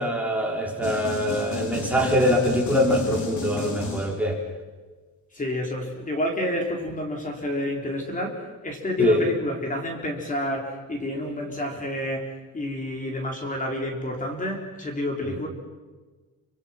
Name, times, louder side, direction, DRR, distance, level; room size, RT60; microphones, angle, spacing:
voice 1, 0.0-4.4 9.0-9.2, equal, 5° right, -1 dB, 4.2 m, -23 dB
sound 1, 0.8-4.5, left 4 dB, 60° left, 4.1 m, -32 dB
voice 2, 5.3-15.5, left 1 dB, 25° left, 2 dB, 4.2 m, -29 dB
28.5 x 26.0 x 5.9 m, 1.3 s
cardioid pair, 165°, 32 cm